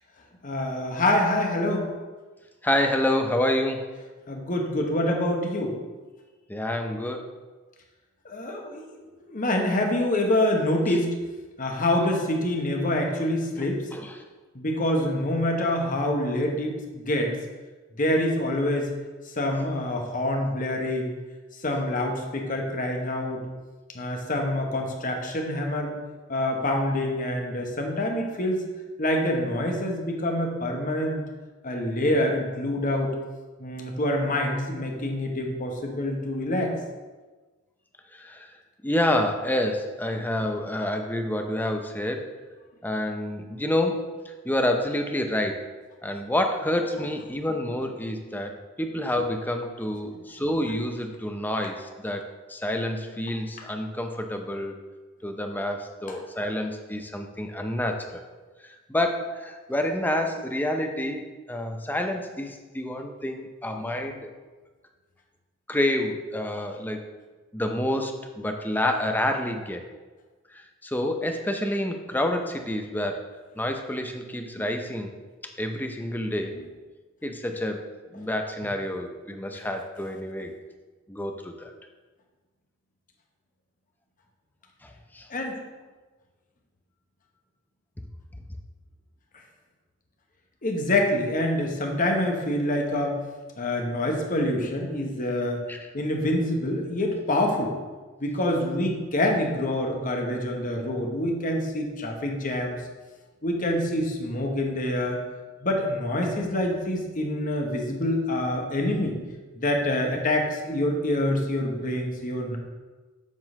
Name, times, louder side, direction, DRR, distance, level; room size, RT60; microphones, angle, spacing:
voice 1, 0.4-1.9 4.3-5.7 8.2-8.8 9.3-11.1 11.6-13.8 14.5-17.3 18.0-18.9 19.4-21.1 21.6-23.4 23.9-26.0 26.3-28.6 29.0-31.2 31.6-33.1 33.6-36.7 40.1-40.2 85.3-85.6 90.6-93.2 93.6-95.6 95.9-97.7 98.2-102.8 103.4-105.2 105.6-109.1 109.6-112.6, left 1 dB, 40° left, 1 dB, 1.2 m, -26 dB
voice 2, 2.6-3.9 6.5-7.3 13.5-13.7 13.9-14.2 38.1-38.5 38.8-42.2 42.8-45.6 46.0-54.7 55.2-58.2 58.6-64.3 65.7-67.0 67.5-69.8 70.5-75.1 75.6-76.6 77.2-80.5 81.1-81.7 84.8-85.3 95.7-95.9, left 1 dB, 10° left, 4 dB, 0.6 m, -28 dB
7.4 x 3.9 x 6.4 m, 1.3 s
head